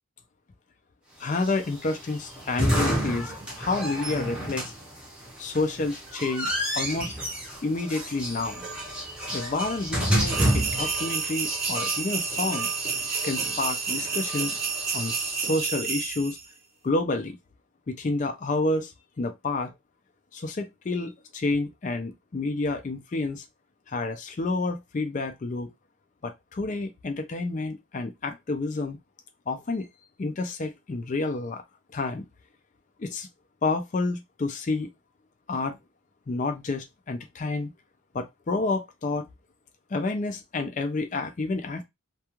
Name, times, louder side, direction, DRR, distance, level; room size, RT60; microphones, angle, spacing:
voice 1, 1.2-4.7 5.4-7.1 7.6-8.7 9.3-12.7 13.2-14.6 14.9-16.4 16.8-17.4 17.9-18.9 19.2-19.7 20.3-23.4 23.9-25.7 26.2-29.0 29.5-29.9 30.2-31.6 31.9-32.3 33.0-33.3 33.6-34.9 35.5-35.8 36.3-37.7 38.1-39.3 39.9-41.8, left 3 dB, 35° left, 0.4 m, -29 dB
sound 1, 1.3-15.6, equal, 5° right, 0.7 m, -31 dB
sound 2, 10.3-16.4, right 5 dB, 45° right, 0.6 m, -30 dB
2.3 x 2.3 x 2.9 m
head